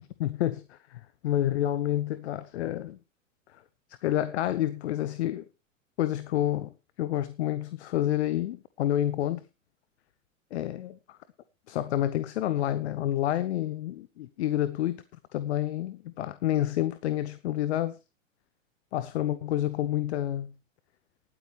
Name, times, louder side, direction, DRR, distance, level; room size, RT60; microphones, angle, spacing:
voice 1, 0.2-3.0 3.5-3.6 4.0-5.5 6.0-6.7 7.0-9.4 10.5-11.2 11.7-15.0 15.3-18.0 18.9-20.5, left 13 dB, 55° left, 0.9 m, -29 dB
19.5 x 8.6 x 3.3 m
figure-of-eight pair, 95°, 40 cm